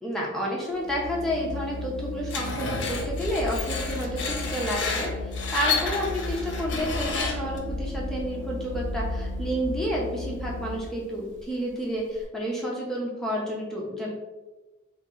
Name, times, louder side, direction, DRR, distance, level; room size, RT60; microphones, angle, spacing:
voice 1, 0.0-14.1, equal, ahead, -4 dB, 0.6 m, -30 dB
Organ, 0.7-11.0, left 2 dB, 65° right, 0.9 m, -34 dB
Screech, 2.3-7.6, left 4 dB, 60° left, 0.6 m, -31 dB
2.9 x 2.9 x 3.7 m, 1.1 s
head